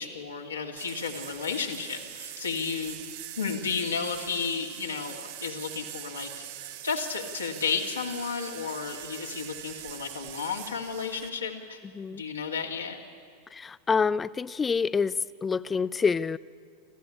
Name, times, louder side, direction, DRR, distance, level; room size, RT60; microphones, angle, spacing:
voice 1, 0.0-3.0 3.4-6.3 6.8-11.8 12.1-13.0, left 5 dB, 75° left, 0 dB, 2.5 m, -32 dB
sound 1, 0.8-11.3, right 12 dB, 50° right, 1.1 m, -42 dB
voice 2, 13.5-16.4, left 5 dB, 15° left, 19 dB, 0.5 m, -27 dB
27.0 x 14.5 x 9.9 m, 2.1 s
figure-of-eight pair, 85°, 0 cm